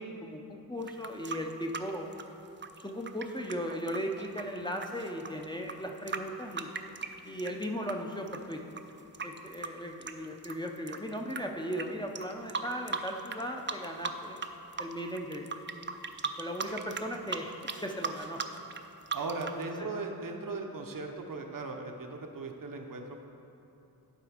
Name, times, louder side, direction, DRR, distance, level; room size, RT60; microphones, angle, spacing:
voice 1, 0.0-2.1 2.8-6.7 7.2-8.6 9.2-14.4 14.8-15.5 16.4-17.5 17.8-18.4 19.7-19.9, equal, 10° left, 1 dB, 0.6 m, -37 dB
sound 1, 0.8-7.9 8.3-11.4 11.7-11.9 12.2-13.4 13.7-14.5 14.7-19.6, right 5 dB, 30° right, 0.4 m, -38 dB
voice 2, 18.9-23.2, right 3 dB, 60° right, 3 dB, 0.8 m, -38 dB
11.0 x 4.0 x 5.0 m, 2.9 s
wide cardioid pair, 55°, 38 cm